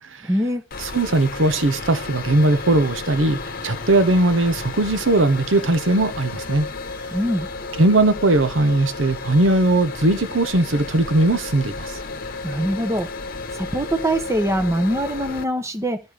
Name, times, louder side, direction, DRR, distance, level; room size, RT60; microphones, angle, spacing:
voice 1, 0.2-0.6 7.1-7.5 12.4-13.1 13.6-16.0, equal, 15° right, 1.1 m, -23 dB
sound 1, 0.7-15.4, left 3 dB, 50° left, 1.0 m, -33 dB
voice 2, 0.8-6.7 7.8-12.0, right 2 dB, 80° right, 0.9 m, -19 dB
12.5 x 4.3 x 5.0 m
head